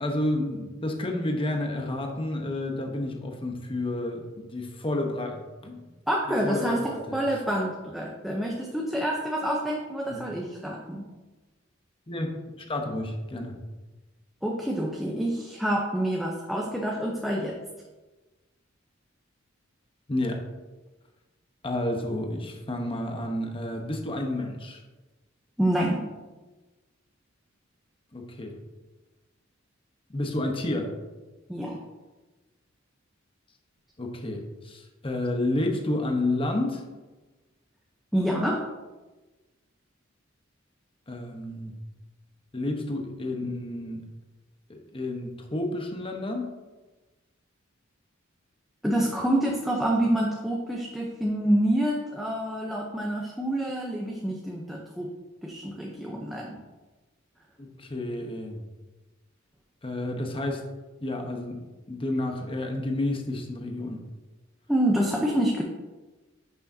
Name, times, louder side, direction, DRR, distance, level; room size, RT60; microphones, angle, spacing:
voice 1, 0.0-5.9 6.4-7.2 10.1-10.2 12.1-13.6 20.1-20.4 21.6-24.8 28.1-28.6 30.1-30.9 34.0-36.8 41.1-41.7 42.5-44.0 44.7-46.5 57.6-58.6 59.8-60.6 61.0-61.6 61.9-64.0, left 1 dB, 25° left, 2 dB, 1.0 m, -30 dB
voice 2, 6.1-11.1 14.4-17.6 25.6-26.1 31.5-31.8 38.1-38.6 48.8-55.1 55.4-56.6 64.7-65.6, right 1 dB, ahead, -3 dB, 0.8 m, -27 dB
10.5 x 6.3 x 2.7 m, 1.2 s
head